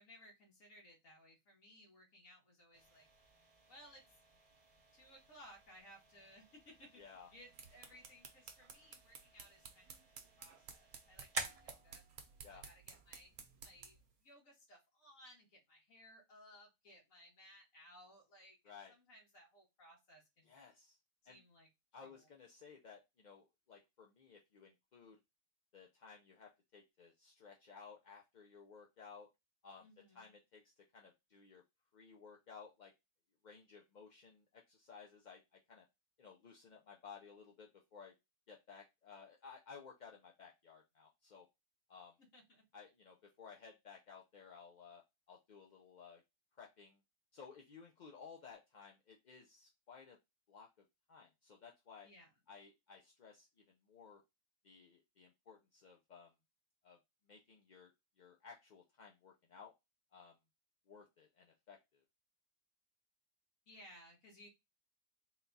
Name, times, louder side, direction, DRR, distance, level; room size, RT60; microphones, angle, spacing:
voice 1, 0.0-3.1 3.7-4.0 4.9-10.0 10.4-12.0 12.5-13.3 13.6-20.5 21.2-21.7 22.0-22.3 29.8-30.4 42.3-42.6 52.0-52.3 63.7-64.5, equal, 75° left, -1 dB, 1.8 m, -61 dB
sound 1, 2.7-14.3, right 2 dB, 35° right, 0.7 m, -52 dB
voice 2, 7.0-7.3 12.4-12.7 18.6-18.9 20.4-21.0 21.3-21.4 21.9-25.2 25.7-29.3 29.6-29.9 30.1-31.6 31.9-32.9 33.4-35.9 36.2-38.1 38.5-41.5 41.9-42.1 42.7-45.0 45.3-46.2 46.6-47.0 47.3-50.2 50.5-52.1 52.5-54.2 54.6-56.3 56.8-57.0 57.3-57.9 58.2-59.7 60.1-60.4 60.9-62.0, left 6 dB, 55° left, 0 dB, 0.5 m, -57 dB
sound 2, 7.3-14.1, right 6 dB, 75° right, 1.1 m, -56 dB
3.8 x 2.3 x 3.9 m, 0.22 s
omnidirectional pair, 1.4 m